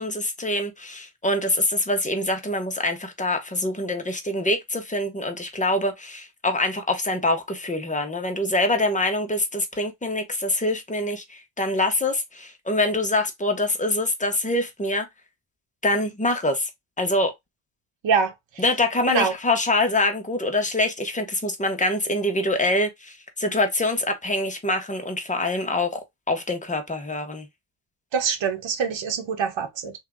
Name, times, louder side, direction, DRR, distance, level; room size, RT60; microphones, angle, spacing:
voice 1, 0.0-15.1 15.8-16.7 17.0-17.3 18.6-27.5, left 1 dB, 15° left, 1.0 m, -25 dB
voice 2, 28.1-29.9, right 6 dB, 65° right, 1.3 m, -24 dB
3.4 x 2.8 x 3.6 m
cardioid pair, 100°, 48 cm